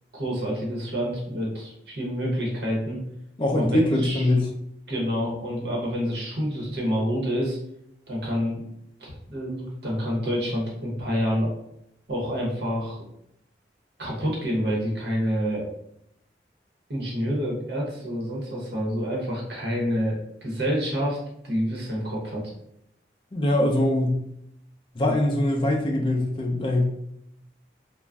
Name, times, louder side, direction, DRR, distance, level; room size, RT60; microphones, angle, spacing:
voice 1, 0.1-3.0 3.5-4.2 4.9-7.6 8.1-8.6 9.0-11.5 12.1-13.0 14.0-15.7 16.9-21.2 21.4-22.5, equal, 70° right, -3 dB, 0.8 m, -28 dB
voice 2, 3.4-4.5 23.3-24.2 24.9-26.8, left 1 dB, 30° left, 2 dB, 0.4 m, -22 dB
2.4 x 2.0 x 3.3 m, 0.76 s
head